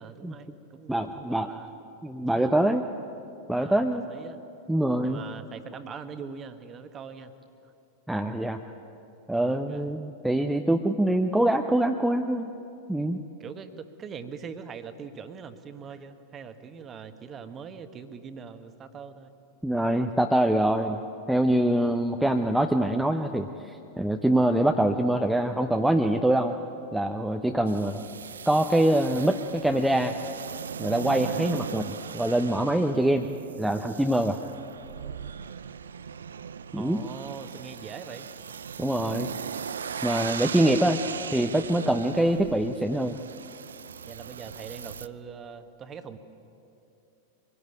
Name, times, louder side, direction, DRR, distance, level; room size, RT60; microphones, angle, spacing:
voice 1, 0.0-1.7 2.3-2.5 3.5-4.4 5.0-7.3 9.3-9.9 13.4-19.3 36.7-38.3 40.5-40.9 44.0-46.2, right 6 dB, 25° right, 10 dB, 1.4 m, -42 dB
voice 2, 0.9-1.5 2.0-2.8 3.5-4.1 4.7-5.2 8.1-8.6 9.3-12.5 12.9-13.2 19.6-21.0 21.3-26.6 26.9-28.0 28.5-30.1 30.8-33.3 33.6-34.4 36.7-37.0 38.8-39.3 40.0-41.0 41.3-43.2, right 1 dB, 5° right, 4 dB, 0.8 m, -24 dB
sound 1, 27.6-45.1, right 7 dB, 70° right, 0.5 m, -38 dB
24.0 x 17.5 x 9.3 m, 2.8 s
figure-of-eight pair, 90°, 0 cm